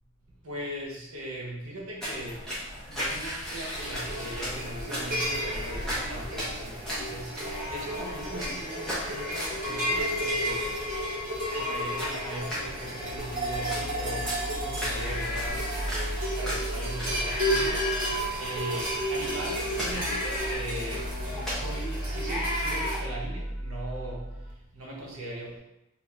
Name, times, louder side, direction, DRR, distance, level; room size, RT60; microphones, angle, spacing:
voice 1, 0.4-2.5 2.9-10.8 11.5-15.7 16.3-17.9 18.4-21.1 21.4-25.6, right 1 dB, 80° right, -3 dB, 1.0 m, -39 dB
sound 1, 2.0-21.5, equal, ahead, 0.9 m, -38 dB
sound 2, 3.7-23.0, equal, 40° right, 1.4 m, -32 dB
sound 3, 12.8-24.5, equal, 55° left, 0.8 m, -37 dB
2.8 x 2.5 x 3.6 m, 0.87 s
head